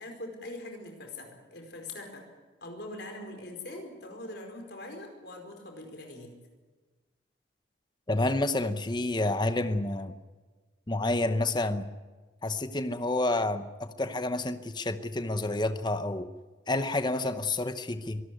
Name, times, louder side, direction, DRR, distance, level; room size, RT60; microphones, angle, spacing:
voice 1, 0.0-2.2 2.6-6.3, left 2 dB, 60° left, 4 dB, 4.8 m, -42 dB
voice 2, 8.1-10.1 10.9-11.9 12.4-16.3 16.7-18.2, left 2 dB, 25° left, 10 dB, 0.9 m, -29 dB
24.0 x 13.0 x 9.9 m, 1.3 s
head